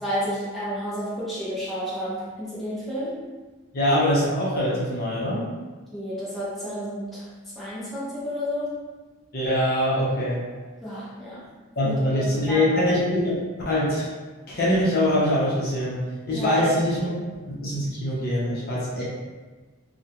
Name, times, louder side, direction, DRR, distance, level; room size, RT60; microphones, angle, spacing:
voice 1, 0.0-3.2 5.9-7.3 7.6-8.8 10.8-11.5 11.8-12.8 16.3-16.7 17.1-17.2, equal, ahead, -11 dB, 0.6 m, -31 dB
voice 2, 3.7-5.4 9.3-10.4 11.8-14.1 14.5-16.0 16.3-17.0 17.5-19.0, left 1 dB, 45° left, -7 dB, 0.6 m, -23 dB
2.4 x 2.1 x 2.8 m, 1.3 s
head